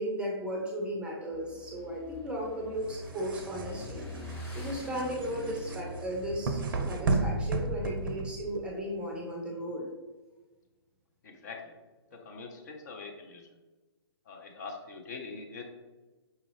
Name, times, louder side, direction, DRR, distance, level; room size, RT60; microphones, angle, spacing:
voice 1, 0.0-4.0 4.5-9.9, equal, 5° right, -1 dB, 0.6 m, -35 dB
Motorcycle / Engine, 1.3-8.4, equal, 10° left, 1.1 m, -44 dB
sound 1, 2.8-8.7, right 3 dB, 55° right, 0.5 m, -33 dB
voice 2, 11.2-11.7 12.1-13.5 14.3-15.6, left 4 dB, 40° left, 2 dB, 0.6 m, -43 dB
5.4 x 2.4 x 3.2 m, 1.2 s
figure-of-eight pair, 125°, 14 cm